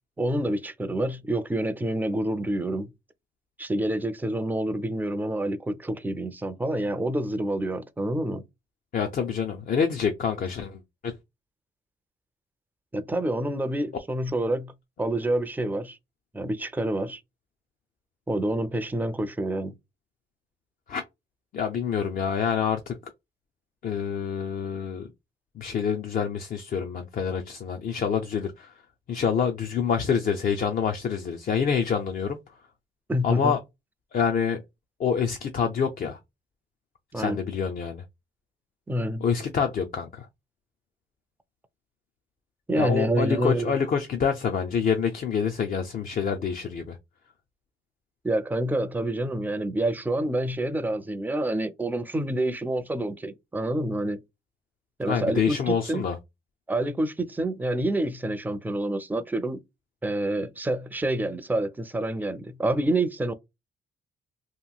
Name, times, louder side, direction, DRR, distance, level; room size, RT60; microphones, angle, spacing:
voice 1, 0.2-2.9 3.6-8.4 12.9-14.7 15.0-16.0 16.3-17.2 18.3-19.7 33.1-33.6 37.1-37.4 38.9-39.2 42.7-43.7 48.2-54.2 55.0-56.1 56.7-59.6 60.0-63.3, right 1 dB, 10° right, 0.4 m, -27 dB
voice 2, 8.9-11.1 20.9-21.0 21.5-23.0 23.8-25.1 25.6-28.7 29.1-32.4 33.2-33.6 34.1-34.6 35.0-36.2 37.1-38.0 39.2-40.3 42.7-47.0 55.1-56.2, left 6 dB, 45° left, 0.5 m, -27 dB
2.9 x 2.6 x 2.3 m
cardioid pair, 90°, 20 cm